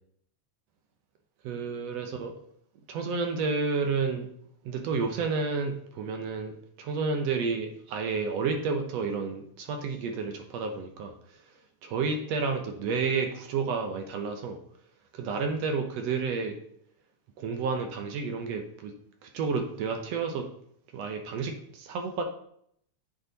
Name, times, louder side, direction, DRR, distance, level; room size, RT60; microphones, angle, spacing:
voice 1, 1.5-2.3 2.9-4.3 4.7-11.1 11.8-14.6 15.1-16.6 17.4-18.9 19.2-20.5 20.9-22.2, right 4 dB, 70° right, 4 dB, 1.8 m, -30 dB
8.6 x 4.8 x 3.9 m, 0.68 s
omnidirectional pair, 3.5 m